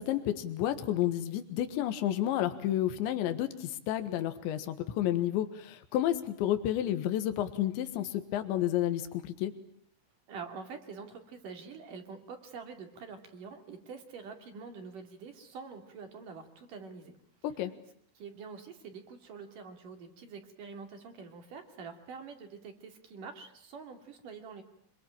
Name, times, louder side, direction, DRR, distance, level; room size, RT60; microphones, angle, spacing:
voice 1, 0.0-9.5 17.4-17.7, left 12 dB, 80° left, 9 dB, 3.8 m, -31 dB
voice 2, 10.3-17.2 18.2-24.6, right 5 dB, 50° right, 6 dB, 3.8 m, -46 dB
26.0 x 23.0 x 8.9 m, 0.67 s
omnidirectional pair, 5.3 m